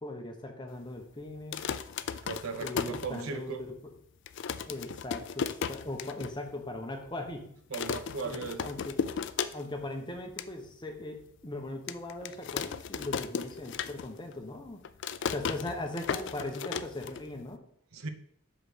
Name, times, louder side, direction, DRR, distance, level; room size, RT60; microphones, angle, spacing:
voice 1, 0.0-1.7 2.6-3.7 4.7-7.5 8.2-9.0 9.5-14.8 15.3-17.6, left 1 dB, 20° left, 3 dB, 0.9 m, -39 dB
sound 1, 1.4-3.6 4.0-4.1 4.3-6.3 6.7-6.8 7.0-7.3 7.7-9.9 10.2-10.5 11.0-11.1 11.9-14.3 14.6-17.5, left 7 dB, 55° left, 0.3 m, -35 dB
voice 2, 2.2-3.7 7.7-8.7 17.9-18.1, right 5 dB, 75° right, 10 dB, 0.7 m, -37 dB
6.0 x 4.9 x 5.0 m, 0.67 s
head